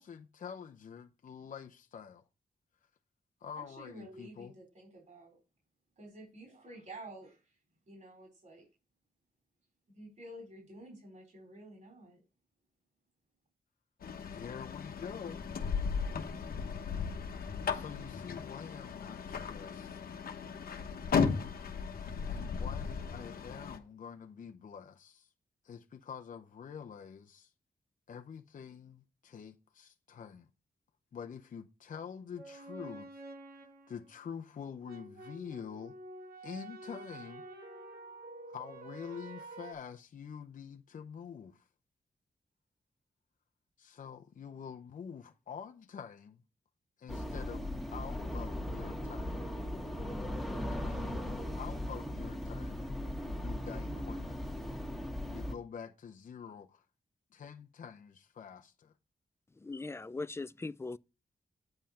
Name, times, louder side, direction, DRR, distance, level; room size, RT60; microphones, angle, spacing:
voice 1, 0.0-2.2 3.4-4.5 14.3-15.5 16.8-17.1 17.7-20.0 22.3-25.3 25.6-27.5 28.1-30.5 31.1-33.1 33.6-35.9 36.4-37.4 38.5-41.7 43.8-46.4 47.0-49.4 50.7-52.8 53.4-54.4 55.3-56.8 57.3-58.9, left 7 dB, 60° left, 0.7 m, -46 dB
voice 2, 3.5-5.4 6.0-7.6 7.9-8.7 9.9-12.2, right 1 dB, 60° right, 4.3 m, -51 dB
sound 1, 14.0-23.8, left 6 dB, 75° left, 1.1 m, -36 dB
sound 2, 32.4-34.2 34.8-39.7, right 2 dB, 90° right, 2.3 m, -49 dB
sound 3, 47.1-55.5, left 1 dB, ahead, 1.7 m, -38 dB
voice 3, 59.6-61.0, left 3 dB, 15° left, 0.4 m, -39 dB
9.0 x 5.6 x 4.2 m
cardioid pair, 70°, 15 cm